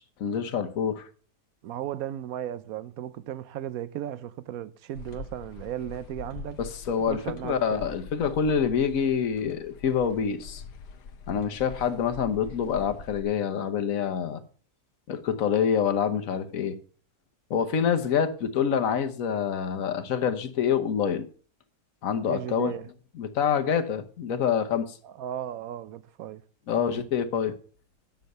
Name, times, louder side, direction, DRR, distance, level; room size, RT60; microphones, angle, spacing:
voice 1, 0.2-1.1 6.6-10.6 11.3-14.4 15.1-16.8 17.5-21.2 22.0-22.7 23.2-25.0 26.7-27.5, left 7 dB, 60° left, 1.3 m, -26 dB
voice 2, 1.6-6.6 7.1-7.8 22.3-22.9 25.0-26.4 26.7-27.0, right 11 dB, 70° right, 1.0 m, -36 dB
sound 1, 4.9-13.2, left 5 dB, 85° left, 1.5 m, -44 dB
9.4 x 6.4 x 6.6 m
omnidirectional pair, 1.7 m